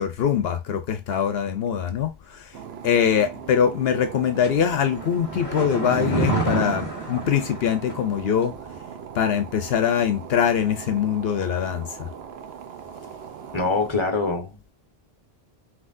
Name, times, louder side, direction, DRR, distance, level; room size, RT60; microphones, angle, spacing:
voice 1, 0.0-2.5 2.8-8.5 9.1-12.1, left 8 dB, 75° left, 0.8 m, -23 dB
sound 1, 2.5-13.9, right 7 dB, 85° right, 0.9 m, -40 dB
sound 2, 4.4-8.1 8.4-8.5, right 3 dB, 10° left, 2.2 m, -28 dB
voice 2, 13.5-14.7, left 3 dB, 30° left, 1.1 m, -24 dB
5.9 x 2.7 x 2.5 m
omnidirectional pair, 1.0 m